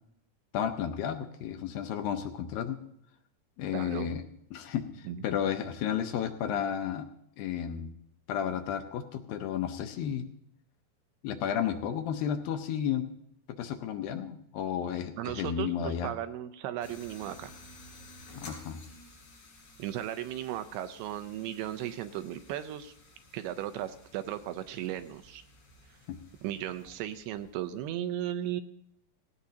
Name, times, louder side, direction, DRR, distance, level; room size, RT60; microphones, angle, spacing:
voice 1, 0.5-2.8 3.6-4.2 4.5-7.1 7.4-7.9 8.3-10.3 11.2-13.1 13.5-16.1 18.4-18.8 26.1-26.2, left 9 dB, 75° left, 7 dB, 2.2 m, -32 dB
voice 2, 3.7-4.1 5.1-5.2 15.2-17.5 19.8-22.9 23.3-25.4 26.4-28.6, right 12 dB, 80° right, 11 dB, 2.6 m, -36 dB
sound 1, 16.8-27.9, left 2 dB, 45° left, 4.8 m, -53 dB
17.5 x 17.0 x 2.8 m, 0.75 s
omnidirectional pair, 4.8 m